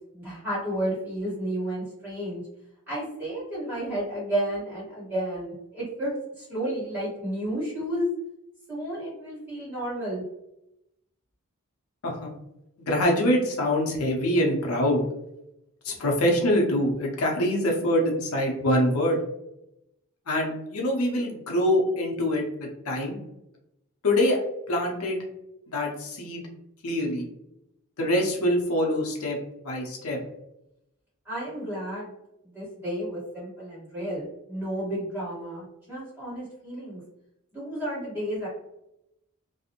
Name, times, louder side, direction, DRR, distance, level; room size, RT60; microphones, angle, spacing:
voice 1, 0.1-2.4 2.9-8.1 8.7-10.2 31.2-32.1 32.5-37.0 37.5-38.5, right 1 dB, 10° right, -9 dB, 1.2 m, -32 dB
voice 2, 12.8-15.0 15.8-19.2 20.3-23.2 24.0-24.4 24.7-25.2 25.7-26.4 26.8-27.2 28.0-29.4 29.6-30.2, left 1 dB, 85° left, 0 dB, 0.6 m, -24 dB
2.4 x 2.0 x 2.8 m, 0.84 s
head